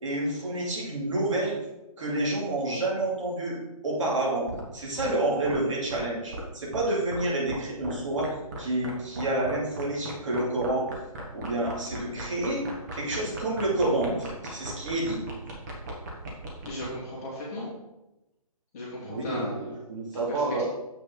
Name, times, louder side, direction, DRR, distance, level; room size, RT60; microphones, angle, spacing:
voice 1, 0.0-1.6 2.0-3.6 3.8-4.5 4.7-10.9 11.3-12.6 12.9-15.2 19.0-20.6, right 2 dB, 55° right, -3 dB, 2.8 m, -29 dB
sound 1, 4.5-4.6 5.0-5.1 5.4-5.6 5.9-6.0 6.3-6.4 6.7-6.8 7.1-7.2 7.5-7.6 7.8-8.3 8.5-8.6 8.8-16.8, right 2 dB, 30° right, 1.4 m, -37 dB
voice 2, 16.6-17.7 18.7-19.7 20.1-20.6, left 1 dB, 25° left, -6 dB, 2.1 m, -36 dB
7.3 x 6.0 x 3.9 m, 0.95 s
hypercardioid pair, 165°, 19 cm